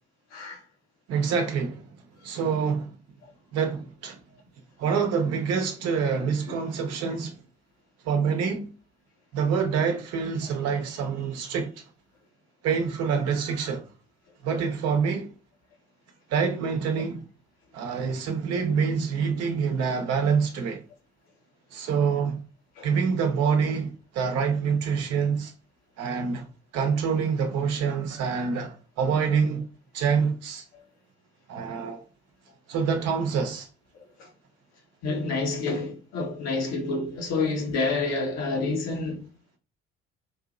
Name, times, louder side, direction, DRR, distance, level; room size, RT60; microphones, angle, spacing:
voice 1, 1.1-1.8 2.2-2.9 3.5-4.2 4.8-7.3 8.1-8.7 9.3-11.7 12.6-13.8 14.4-15.3 16.3-17.2 17.7-20.8 21.7-22.4 22.8-25.5 26.0-26.5 26.7-29.7 29.9-30.6 31.5-32.0 32.7-33.7, right 6 dB, 50° right, 0.8 m, -26 dB
voice 2, 35.0-39.3, left 3 dB, 55° left, 1.2 m, -28 dB
4.6 x 2.7 x 2.5 m
figure-of-eight pair, 50°, 32 cm